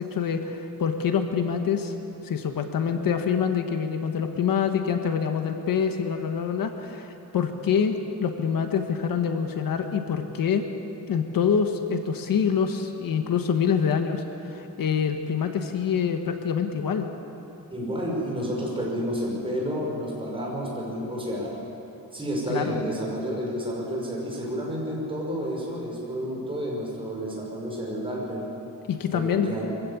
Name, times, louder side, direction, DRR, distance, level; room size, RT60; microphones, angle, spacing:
voice 1, 0.0-1.9 2.2-10.7 11.1-17.1 22.5-22.8 28.9-29.5, left 7 dB, 70° left, 6 dB, 1.4 m, -26 dB
voice 2, 17.7-21.5 22.1-28.5 29.1-29.6, equal, 15° right, -3 dB, 5.7 m, -30 dB
23.5 x 15.5 x 8.5 m, 2.9 s
wide cardioid pair, 150°, 35 cm